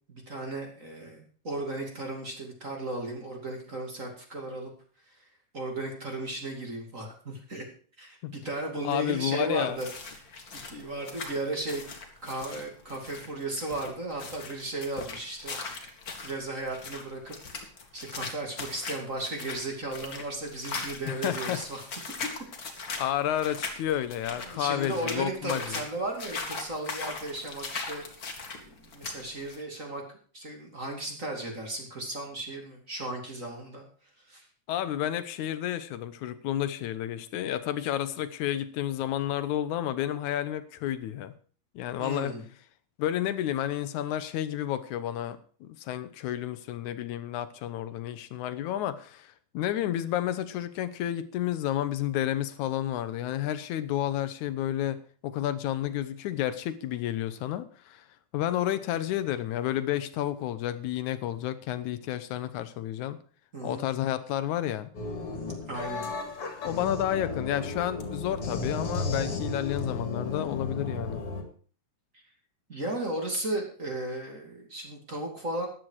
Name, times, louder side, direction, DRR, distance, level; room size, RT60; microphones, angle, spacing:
voice 1, 0.1-4.7 5.1-5.3 5.5-7.6 8.0-9.9 10.2-10.3 10.5-11.8 12.2-15.9 16.2-17.7 17.9-21.8 22.9-23.1 24.4-28.0 28.6-30.0 30.3-33.8 34.3-34.5 42.0-42.4 63.5-63.9 65.7-66.1 72.1-72.2 72.7-75.7, right 2 dB, 25° right, 1 dB, 2.8 m, -35 dB
voice 2, 8.8-9.8 21.1-21.6 23.0-25.8 34.7-41.3 41.8-42.3 43.0-58.1 58.3-63.2 63.6-64.9 66.6-71.2, left 12 dB, 80° left, 12 dB, 2.2 m, -31 dB
sound 1, 9.7-29.6, left 4 dB, 35° left, 1.9 m, -39 dB
sound 2, 64.9-71.4, left 3 dB, 50° left, 2.9 m, -34 dB
14.0 x 10.5 x 4.8 m, 0.42 s
omnidirectional pair, 3.4 m